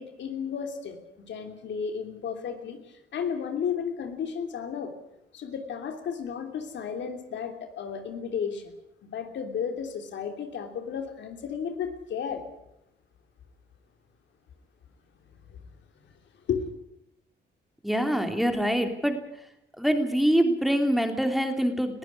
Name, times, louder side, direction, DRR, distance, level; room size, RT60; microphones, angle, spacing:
voice 1, 0.0-4.9 5.3-8.7 9.0-12.4 16.5-16.7, left 7 dB, 75° left, 6 dB, 3.1 m, -33 dB
voice 2, 17.8-19.2 19.8-22.0, equal, ahead, 5 dB, 3.2 m, -24 dB
21.0 x 15.0 x 9.6 m, 0.83 s
cardioid pair, 90°, 19 cm